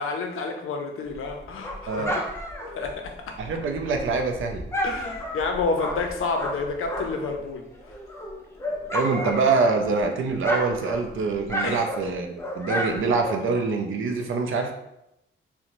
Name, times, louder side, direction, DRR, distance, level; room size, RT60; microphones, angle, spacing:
voice 1, 0.0-2.2 2.7-3.4 4.8-7.6 11.6-11.9, left 4 dB, 90° left, 3 dB, 0.5 m, -29 dB
Dog, 1.1-7.4 7.7-10.0 10.3-13.7, equal, 15° left, 0.3 m, -32 dB
voice 2, 1.9-2.2 3.4-4.6 8.9-14.7, right 4 dB, 75° right, 4 dB, 0.4 m, -25 dB
2.9 x 2.0 x 2.5 m, 0.86 s
wide cardioid pair, 145°, 21 cm